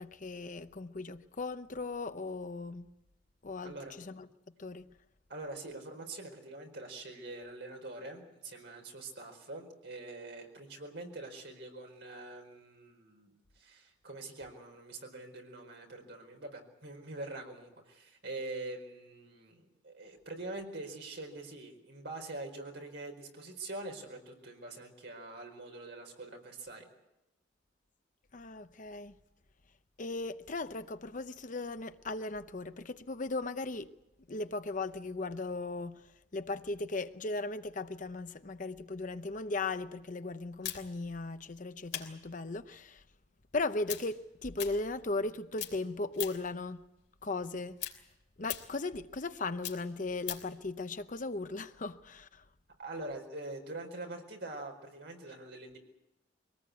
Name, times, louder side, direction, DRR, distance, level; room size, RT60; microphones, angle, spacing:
voice 1, 0.0-2.9 3.4-4.3 4.6-4.9 28.3-29.2 30.0-33.9 34.3-36.0 36.3-43.0 43.5-46.8 47.2-47.8 48.4-52.4, left 3 dB, 45° left, 0.8 m, -37 dB
voice 2, 3.6-4.0 5.3-26.9 52.8-55.8, right 2 dB, 65° right, 4.6 m, -44 dB
sound 1, 40.6-45.3 45.5-46.6 46.9-50.6, left 12 dB, 65° left, 3.2 m, -42 dB
24.0 x 18.5 x 8.4 m
head